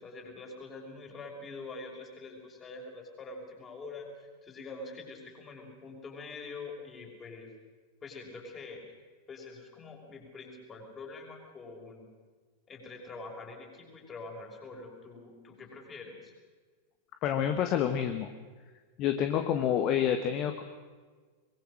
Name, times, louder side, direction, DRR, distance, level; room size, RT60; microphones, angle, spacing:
voice 1, 0.0-7.5 8.0-8.8 9.3-12.1 12.7-16.3, left 3 dB, 20° left, 1 dB, 6.1 m, -45 dB
voice 2, 17.2-18.3 19.0-20.6, left 9 dB, 40° left, 7 dB, 1.5 m, -28 dB
24.0 x 22.0 x 6.5 m, 1.4 s
figure-of-eight pair, 90°, 0 cm